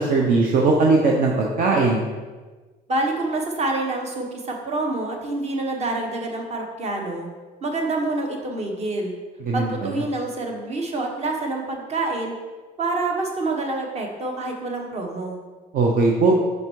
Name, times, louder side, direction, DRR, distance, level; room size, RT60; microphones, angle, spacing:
voice 1, 0.0-2.0 9.4-9.9 15.7-16.4, right 3 dB, 55° right, -1 dB, 0.8 m, -19 dB
voice 2, 2.9-7.3 7.6-9.1 9.5-12.3 12.8-15.4, right 2 dB, 40° right, 2 dB, 1.2 m, -27 dB
5.4 x 4.8 x 4.6 m, 1.3 s
cardioid pair, 110°, 17 cm